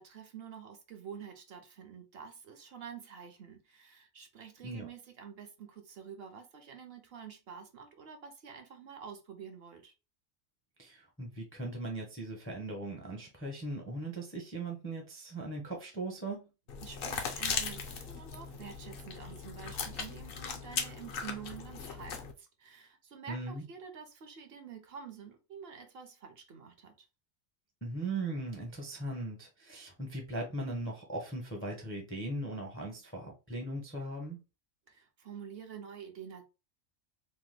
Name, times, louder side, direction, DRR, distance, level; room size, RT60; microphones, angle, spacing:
voice 1, 0.0-9.9 16.8-26.9 34.9-36.4, right 7 dB, 60° right, 0.7 m, -48 dB
voice 2, 10.8-16.5 23.3-23.6 27.8-34.4, right 2 dB, 15° left, 0.4 m, -39 dB
sound 1, 16.7-22.3, left 5 dB, 60° left, 0.6 m, -38 dB
2.8 x 2.2 x 3.2 m
omnidirectional pair, 1.4 m